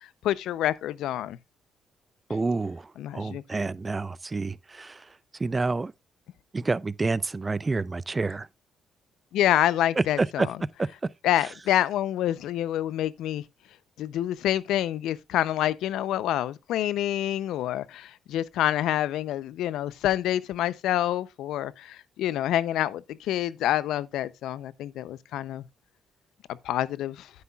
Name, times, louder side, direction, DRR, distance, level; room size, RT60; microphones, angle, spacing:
voice 1, 0.2-1.4 3.0-3.4 9.3-10.6 11.2-13.4 14.0-25.6 26.6-27.3, left 12 dB, 85° left, 0.5 m, -27 dB
voice 2, 2.3-5.0 5.4-5.9 6.5-8.5 10.0-10.5 10.8-10.9, right 3 dB, 25° right, 0.4 m, -28 dB
9.5 x 9.5 x 2.3 m
cardioid pair, 90°, 0 cm